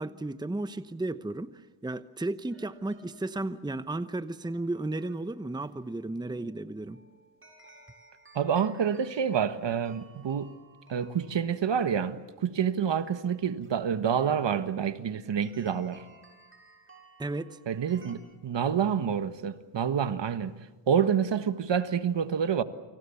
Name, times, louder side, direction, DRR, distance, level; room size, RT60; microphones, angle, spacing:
voice 1, 0.0-7.0 17.2-17.6, right 2 dB, 10° right, 1.0 m, -34 dB
sound 1, 2.5-18.2, right 2 dB, 25° right, 7.3 m, -57 dB
voice 2, 8.3-10.5 10.9-16.0 17.7-20.5 20.9-22.6, right 7 dB, 60° right, 1.6 m, -28 dB
29.0 x 26.0 x 7.2 m
cardioid pair, 80°, 49 cm